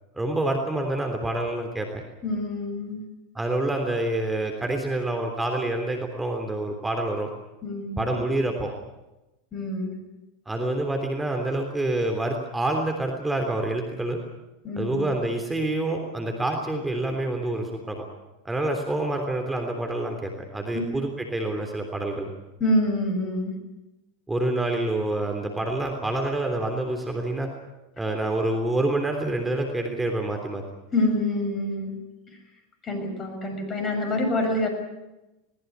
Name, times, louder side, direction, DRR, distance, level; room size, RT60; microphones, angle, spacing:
voice 1, 0.1-2.0 3.4-7.3 8.0-8.7 10.5-14.2 14.8-18.1 18.5-22.3 24.3-27.5 28.0-30.6, right 2 dB, 10° right, 3 dB, 3.4 m, -27 dB
voice 2, 2.2-3.0 7.6-8.0 9.5-9.9 14.6-15.1 20.7-20.9 22.6-23.6 30.9-32.0 32.3-32.4 32.8-34.7, left 1 dB, 30° left, 5 dB, 6.9 m, -26 dB
21.5 x 19.5 x 8.2 m, 0.99 s
hypercardioid pair, 85°, 0 cm